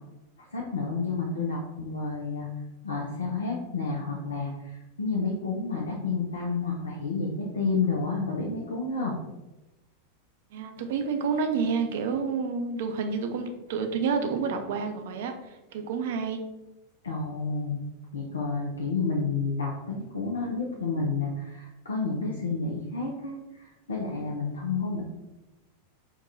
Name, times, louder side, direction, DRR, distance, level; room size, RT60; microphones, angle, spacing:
voice 1, 0.5-2.5 2.8-9.1 17.0-25.0, left 4 dB, 70° left, -2 dB, 0.5 m, -30 dB
voice 2, 10.5-15.3 15.7-16.4, right 5 dB, 55° right, 5 dB, 0.4 m, -29 dB
4.7 x 2.2 x 2.6 m, 1.0 s
figure-of-eight pair, 90°, 0 cm